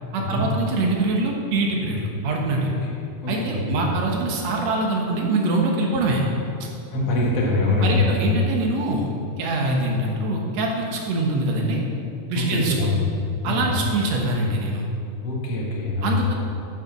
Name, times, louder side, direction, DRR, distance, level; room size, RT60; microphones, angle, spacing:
voice 1, 0.1-2.7 3.3-6.2 6.6-6.7 7.8-9.1 9.4-11.8 12.3-12.9 13.4-14.9 16.0-16.4, right 2 dB, 60° right, 0 dB, 2.2 m, -24 dB
voice 2, 3.2-3.9 6.9-8.3 12.4-12.9 13.4-13.8 15.2-16.2, left 3 dB, 55° left, -3 dB, 2.4 m, -24 dB
8.9 x 6.9 x 6.0 m, 2.5 s
omnidirectional pair, 3.8 m